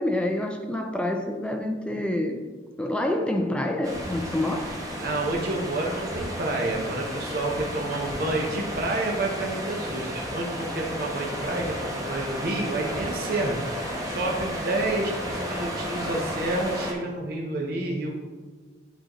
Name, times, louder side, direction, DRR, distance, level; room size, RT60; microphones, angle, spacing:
voice 1, 0.0-2.4 2.8-4.7, left 1 dB, 5° left, 4 dB, 0.3 m, -27 dB
sound 1, 3.8-16.9, equal, 20° right, 1.0 m, -33 dB
voice 2, 5.0-13.6 14.0-18.2, right 2 dB, 55° right, -1 dB, 0.7 m, -29 dB
10.0 x 3.8 x 3.0 m, 1.4 s
head